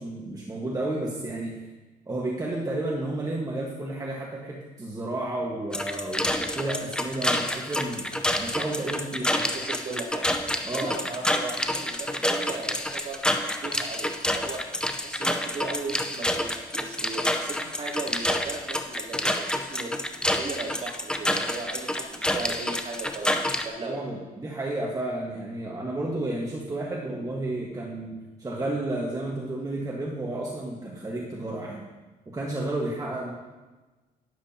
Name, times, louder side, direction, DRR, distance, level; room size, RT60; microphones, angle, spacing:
voice 1, 0.0-1.7 2.1-8.1 8.4-9.4 10.6-10.9 23.8-31.9 32.3-33.3, right 2 dB, 20° right, -3 dB, 1.6 m, -32 dB
sound 1, 5.7-23.7, left 1 dB, 5° left, 0.7 m, -28 dB
voice 2, 9.3-10.3 10.7-14.6 15.0-19.9 20.3-24.0, right 3 dB, 45° right, -6 dB, 3.3 m, -37 dB
12.5 x 10.5 x 2.9 m, 1.2 s
cardioid pair, 105°, 16 cm